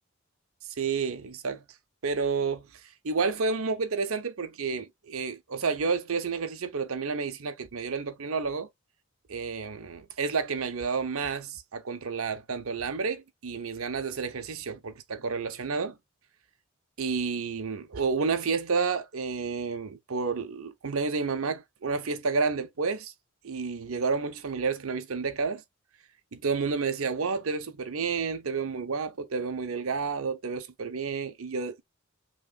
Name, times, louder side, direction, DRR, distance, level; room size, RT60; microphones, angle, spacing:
voice 1, 0.8-1.6 2.0-2.7 3.0-8.7 9.3-16.0 17.0-23.1 23.4-25.6 26.3-31.8, right 5 dB, 75° right, 0.7 m, -30 dB
5.2 x 3.0 x 2.3 m
head